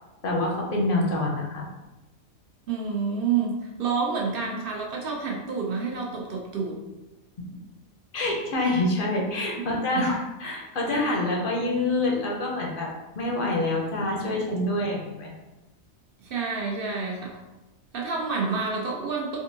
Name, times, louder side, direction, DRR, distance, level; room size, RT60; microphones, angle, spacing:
voice 1, 0.2-1.7 8.1-15.3, left 2 dB, 55° left, -1 dB, 0.6 m, -26 dB
voice 2, 2.7-6.8 16.2-17.4 17.9-19.4, right 5 dB, 60° right, -1 dB, 0.6 m, -28 dB
3.5 x 2.6 x 2.7 m, 1.1 s
omnidirectional pair, 1.5 m